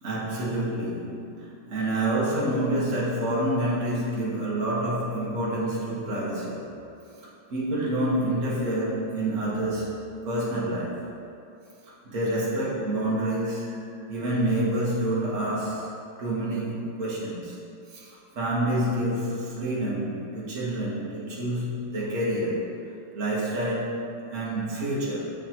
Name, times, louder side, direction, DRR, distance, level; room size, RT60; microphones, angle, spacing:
voice 1, 0.0-6.8 7.5-11.0 12.0-15.9 16.2-17.6 17.9-22.7 23.1-24.0 24.3-25.3, right 1 dB, 45° right, -7 dB, 1.6 m, -28 dB
7.3 x 7.3 x 2.9 m, 2.6 s
omnidirectional pair, 2.1 m